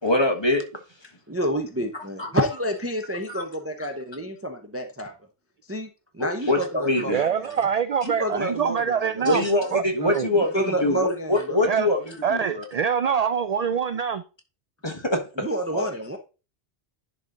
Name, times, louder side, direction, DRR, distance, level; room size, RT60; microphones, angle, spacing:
voice 1, 0.0-0.6 2.2-2.3 3.3-3.4 6.5-7.3 9.2-12.6 14.8-15.4 15.7-15.9, left 1 dB, 25° left, 1.5 m, -24 dB
voice 2, 1.3-5.1 5.7-5.9 6.1-7.5 8.0-9.3 10.4-11.6 15.4-16.2, equal, 15° right, 0.7 m, -29 dB
voice 3, 7.1-9.4 9.7-10.3 11.6-11.9 12.2-14.2, right 7 dB, 55° right, 0.4 m, -24 dB
10.5 x 4.2 x 3.8 m
omnidirectional pair, 1.1 m